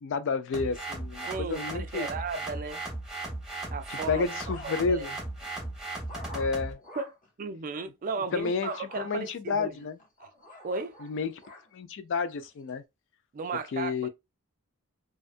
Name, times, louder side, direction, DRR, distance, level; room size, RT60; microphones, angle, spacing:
voice 1, 0.0-2.1 3.9-5.2 6.3-6.8 8.3-10.0 11.0-11.4 11.7-12.8 13.5-14.1, left 5 dB, 60° left, 0.4 m, -31 dB
sound 1, 0.5-6.7, right 2 dB, ahead, 0.8 m, -37 dB
voice 2, 1.2-2.8 3.7-4.3 4.6-5.1 7.0-7.1 7.4-9.7 10.2-10.3 10.6-11.0 13.3-14.1, right 4 dB, 40° right, 0.3 m, -35 dB
sound 2, 3.8-5.2 5.6-7.3 8.7-9.1 9.7-11.7 12.3-12.7, left 1 dB, 35° left, 0.9 m, -48 dB
2.6 x 2.3 x 2.4 m
head